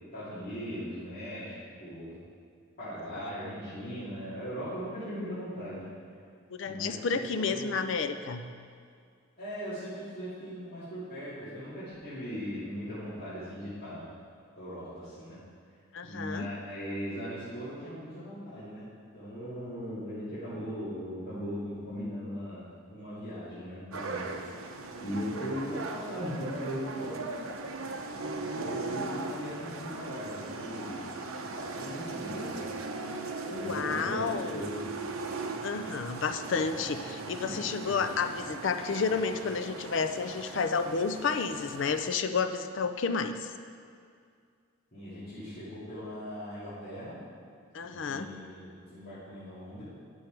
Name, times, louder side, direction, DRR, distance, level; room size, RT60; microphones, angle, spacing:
voice 1, 0.1-2.2 2.8-5.8 6.6-7.6 9.4-14.2 14.6-15.4 16.0-24.2 25.0-27.2 28.5-31.0 31.3-32.6 33.5-34.8 37.4-37.5 44.9-47.2 47.8-49.8, equal, 45° left, -14 dB, 2.3 m, -39 dB
voice 2, 6.5-8.5 15.9-16.5 33.4-34.7 35.6-43.5 47.7-48.3, left 5 dB, 60° left, 9 dB, 0.4 m, -31 dB
sound 1, 23.9-42.2, right 3 dB, 75° right, 0.7 m, -39 dB
9.5 x 6.3 x 4.5 m, 2.2 s
head